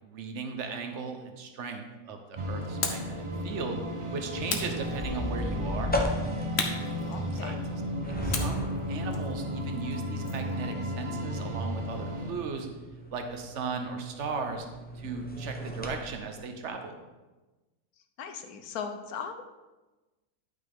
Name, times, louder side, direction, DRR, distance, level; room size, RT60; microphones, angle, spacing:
voice 1, 0.0-3.8 4.1-6.0 7.4-7.8 8.1-12.7 13.1-14.7 14.9-16.9, right 4 dB, 55° right, 5 dB, 1.2 m, -37 dB
sound 1, 2.4-12.3, equal, 35° right, 0.5 m, -34 dB
sound 2, 2.8-3.2 4.5-5.4 6.6-7.7 8.3-10.5, left 4 dB, 50° left, 1.1 m, -36 dB
sound 3, 4.8-16.0, left 1 dB, 10° left, 0.6 m, -37 dB
voice 2, 7.1-7.6 18.2-19.4, left 6 dB, 80° left, 7 dB, 1.3 m, -38 dB
11.5 x 5.8 x 3.6 m, 1.2 s
omnidirectional pair, 1.6 m